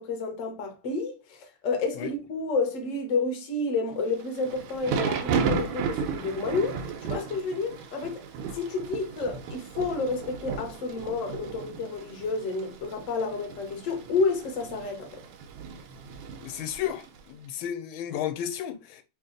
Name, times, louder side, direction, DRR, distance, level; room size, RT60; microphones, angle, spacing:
voice 1, 0.0-8.2 8.5-15.2, left 3 dB, 50° left, 1.0 m, -30 dB
Thunder / Rain, 4.1-17.2, right 6 dB, 85° right, 1.4 m, -34 dB
voice 2, 16.4-19.0, left 10 dB, 85° left, 1.4 m, -33 dB
3.4 x 2.8 x 3.7 m
omnidirectional pair, 2.2 m